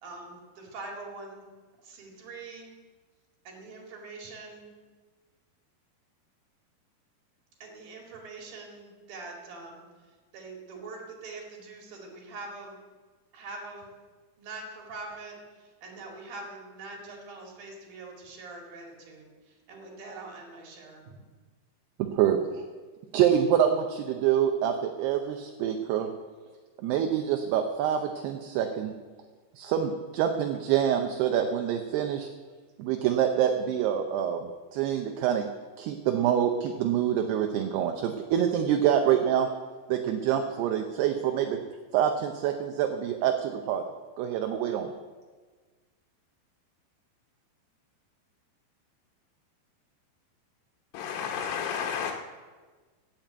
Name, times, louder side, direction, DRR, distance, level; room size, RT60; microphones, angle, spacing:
voice 1, 0.0-1.4 1.8-2.7 3.5-4.7 7.6-12.8 13.3-13.9 14.4-21.2, right 3 dB, 55° right, 0 dB, 3.7 m, -43 dB
voice 2, 22.0-22.6 23.1-26.1 26.8-28.9 29.6-32.3 32.8-35.5 35.8-39.5 39.9-41.6 41.9-43.8 44.2-44.9, right 9 dB, 80° right, 5 dB, 2.5 m, -26 dB
voice 3, 50.9-52.1, left 7 dB, 85° left, 0 dB, 3.5 m, -31 dB
16.5 x 7.6 x 8.0 m, 1.4 s
omnidirectional pair, 5.5 m